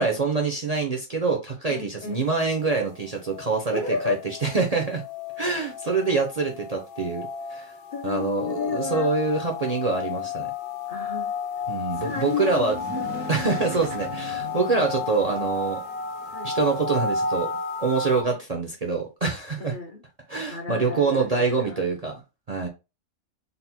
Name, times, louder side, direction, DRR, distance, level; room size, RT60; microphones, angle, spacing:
voice 1, 0.0-3.8 4.0-4.2 4.4-5.0 5.4-7.7 8.0-10.5 11.7-12.7 13.3-15.8 16.4-17.5 17.8-19.7 20.3-22.1 22.5-22.7, right 4 dB, 55° right, 0.4 m, -25 dB
voice 2, 1.7-2.2 3.7-4.2 7.9-9.1 10.9-11.3 12.0-13.6 16.3-16.5 19.6-20.0 20.5-21.8, left 4 dB, 60° left, 0.5 m, -32 dB
sound 1, 2.0-18.2, left 5 dB, 85° left, 1.2 m, -33 dB
sound 2, 11.6-16.4, right 5 dB, 80° right, 1.2 m, -40 dB
4.1 x 2.1 x 4.2 m
omnidirectional pair, 1.6 m